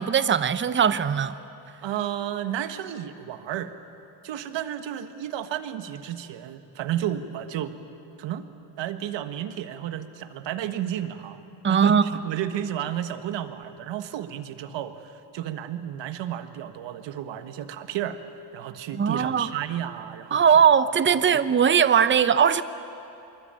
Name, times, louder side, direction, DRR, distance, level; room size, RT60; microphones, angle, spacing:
voice 1, 0.0-1.4 11.6-12.0 18.9-19.5 20.3-22.6, right 7 dB, 25° right, 14 dB, 0.7 m, -20 dB
voice 2, 1.8-3.7 4.2-7.8 8.2-8.4 8.8-11.4 11.7-20.4, right 11 dB, 90° right, 10 dB, 1.5 m, -32 dB
25.5 x 23.5 x 8.9 m, 2.9 s
cardioid pair, 130°, 42 cm